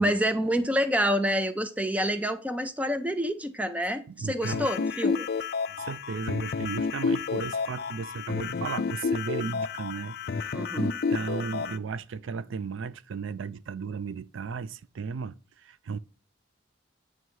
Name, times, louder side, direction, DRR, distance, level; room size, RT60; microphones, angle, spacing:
voice 1, 0.0-5.3 10.5-10.9, equal, 5° right, 0.5 m, -27 dB
voice 2, 4.1-4.6 5.7-16.0, right 5 dB, 85° right, 0.4 m, -35 dB
sound 1, 4.4-11.8, left 5 dB, 55° left, 0.4 m, -30 dB
9.2 x 3.2 x 4.7 m
head